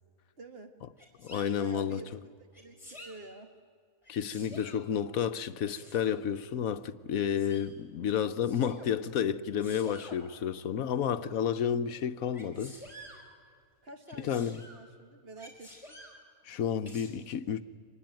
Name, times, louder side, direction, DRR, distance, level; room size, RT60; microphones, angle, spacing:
voice 1, 0.4-0.8 1.6-3.5 13.8-16.0, right 2 dB, 45° right, 1.8 m, -49 dB
Sneeze, 1.0-1.5 2.5-3.2 4.0-4.8 5.7-6.2 7.1-7.7 8.4-8.9 9.6-10.2 12.3-13.2 14.1-14.8 15.4-16.2 16.9-17.1, equal, 20° left, 4.5 m, -49 dB
voice 2, 1.2-2.0 4.1-12.8 14.3-14.6 16.5-17.6, left 8 dB, 75° left, 1.2 m, -31 dB
25.5 x 20.0 x 9.0 m
omnidirectional pair, 1.5 m